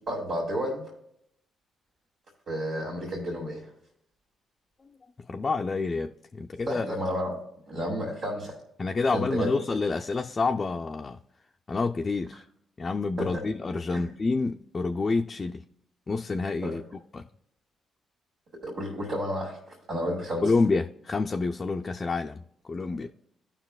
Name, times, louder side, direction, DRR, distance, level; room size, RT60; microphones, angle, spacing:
voice 1, 0.1-0.8 2.5-3.7 6.7-7.4 7.7-8.5 9.1-9.6 13.2-13.4 13.9-14.1 16.6-16.7 18.6-20.5, equal, 65° right, 2.2 m, -31 dB
voice 2, 5.3-6.9 8.8-11.2 11.7-12.4 12.8-15.6 16.1-16.8 17.1-17.3 20.4-23.1, left 3 dB, 40° left, 0.4 m, -28 dB
15.0 x 5.6 x 2.3 m
hypercardioid pair, 50°, 0 cm